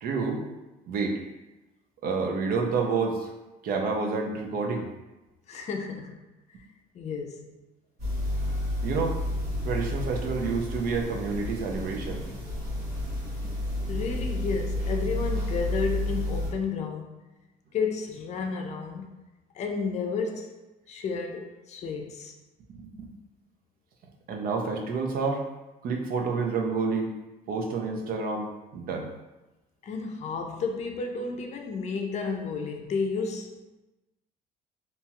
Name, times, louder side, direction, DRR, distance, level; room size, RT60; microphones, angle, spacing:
voice 1, 0.0-0.4 0.9-1.2 2.0-3.3 3.6-4.9 8.8-9.2 9.6-12.3 13.4-13.5 22.7-23.1 24.3-25.4 25.8-27.1 27.5-29.1, right 4 dB, 60° right, 2 dB, 0.5 m, -29 dB
voice 2, 5.5-6.2 6.9-7.5 12.3-12.4 13.9-17.1 17.7-19.1 19.5-20.6 20.9-22.3 29.8-33.7, left 5 dB, 40° left, 3 dB, 0.4 m, -32 dB
sound 1, 8.0-16.5, left 1 dB, 85° right, 1.3 m, -31 dB
2.8 x 2.3 x 2.9 m, 1.0 s
cardioid pair, 110°, 17 cm